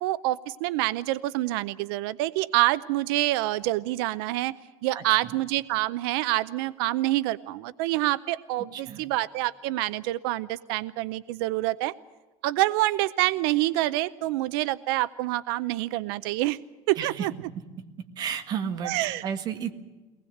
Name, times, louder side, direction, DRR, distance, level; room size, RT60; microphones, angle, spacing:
voice 1, 0.0-4.5 4.8-11.9 12.4-16.6 16.9-17.3 18.8-19.2, right 17 dB, 90° right, 15 dB, 0.6 m, -27 dB
voice 2, 4.9-5.4 8.7-9.0 17.0-17.3 18.2-19.7, right 8 dB, 35° right, 6 dB, 1.7 m, -32 dB
23.0 x 19.5 x 7.9 m, 1.2 s
cardioid pair, 180°, 12 cm